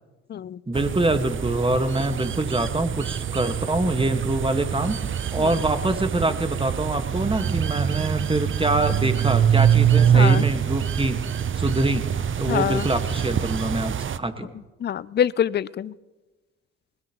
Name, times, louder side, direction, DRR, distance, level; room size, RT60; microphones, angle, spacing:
voice 1, 0.7-5.0 5.3-11.2 11.5-14.5, right 2 dB, 15° right, 8 dB, 1.6 m, -25 dB
sound 1, 0.7-14.2, right 8 dB, 40° right, 0.7 m, -24 dB
voice 2, 10.1-10.4 12.5-12.9 14.8-15.9, left 9 dB, 35° left, 21 dB, 0.5 m, -25 dB
21.0 x 20.0 x 3.1 m, 1.2 s
hypercardioid pair, 50°, 32 cm